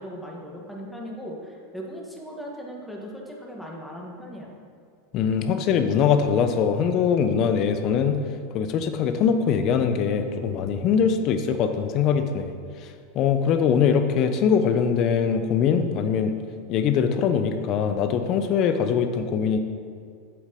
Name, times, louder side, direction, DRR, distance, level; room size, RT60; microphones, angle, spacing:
voice 1, 0.0-4.5, equal, 5° left, -2 dB, 1.7 m, -38 dB
voice 2, 5.1-8.2 8.5-12.5 13.1-16.3 16.7-19.6, left 7 dB, 45° left, 8 dB, 0.8 m, -22 dB
7.9 x 7.3 x 5.3 m, 2.2 s
hypercardioid pair, 115°, 0 cm